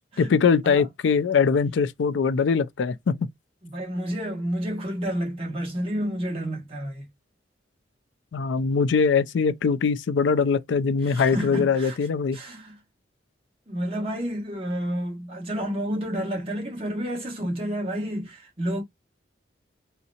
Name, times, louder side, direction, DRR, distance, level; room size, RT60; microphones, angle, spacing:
voice 1, 0.2-3.3 8.3-12.4, left 5 dB, 85° left, 0.4 m, -22 dB
voice 2, 3.6-7.1 11.0-12.0 12.3-12.8 13.7-18.8, equal, 30° right, 1.2 m, -30 dB
3.8 x 2.0 x 2.7 m
head